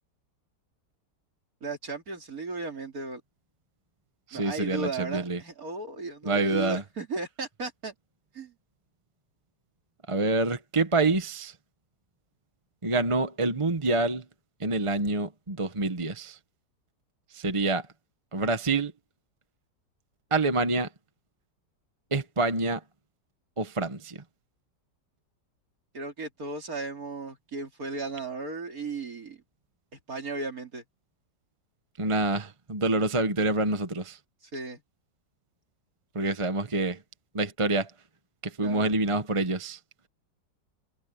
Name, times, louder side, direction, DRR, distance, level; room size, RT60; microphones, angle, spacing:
voice 1, 1.6-3.2 4.3-7.9 8.3-8.5 25.9-29.4 30.1-30.8 34.4-34.8 38.6-38.9, right 3 dB, 55° right, 3.6 m, -35 dB
voice 2, 4.3-5.4 6.2-6.8 10.1-11.5 12.8-14.2 14.6-16.4 17.3-17.8 18.3-18.9 20.3-20.9 22.1-22.8 23.6-24.2 32.0-34.2 36.1-37.0 37.3-37.9 38.4-39.8, right 2 dB, 20° right, 1.0 m, -27 dB
omnidirectional pair, 1.9 m